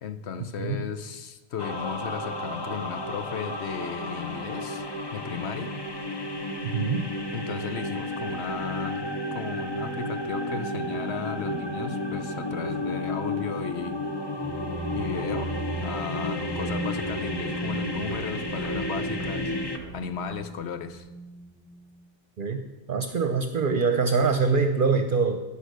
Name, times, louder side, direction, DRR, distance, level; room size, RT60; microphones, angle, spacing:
voice 1, 0.0-4.9 5.1-5.8 7.3-14.0 14.9-19.5 19.9-21.1, left 7 dB, 85° left, 10 dB, 1.1 m, -35 dB
sound 1, 1.6-19.8, left 1 dB, 25° left, 0.8 m, -32 dB
voice 2, 6.6-7.1 22.4-25.4, right 4 dB, 55° right, 7 dB, 0.8 m, -24 dB
sound 2, 14.4-22.1, right 3 dB, 10° right, 0.5 m, -37 dB
Walk footsteps, 16.9-21.1 21.4-21.5, right 2 dB, 50° left, 2.5 m, -45 dB
16.5 x 5.5 x 6.6 m, 1.1 s
omnidirectional pair, 1.1 m